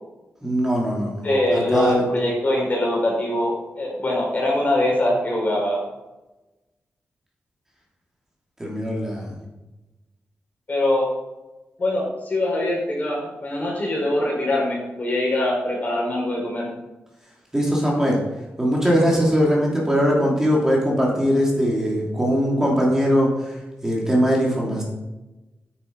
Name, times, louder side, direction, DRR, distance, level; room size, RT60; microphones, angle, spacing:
voice 1, 0.4-1.9 8.6-9.3 17.5-18.2 18.6-23.6 23.8-24.8, equal, 10° right, -3 dB, 3.1 m, -21 dB
voice 2, 1.2-5.8 10.7-11.1 11.8-16.7, left 1 dB, 35° left, -1 dB, 4.4 m, -23 dB
9.7 x 9.1 x 4.7 m, 1.0 s
wide cardioid pair, 140°, 4 cm